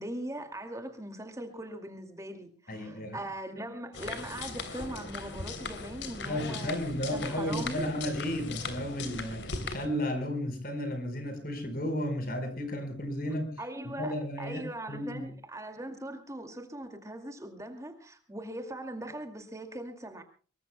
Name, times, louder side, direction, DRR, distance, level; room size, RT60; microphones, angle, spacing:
voice 1, 0.0-6.8 7.1-7.9 13.6-20.2, right 1 dB, 15° right, 6 dB, 2.3 m, -40 dB
voice 2, 2.7-3.2 6.2-13.5 13.9-15.3, equal, 55° left, 9 dB, 4.5 m, -33 dB
sound 1, 3.9-9.9, left 3 dB, 90° left, 3.2 m, -39 dB
24.5 x 22.5 x 2.2 m, 0.39 s
head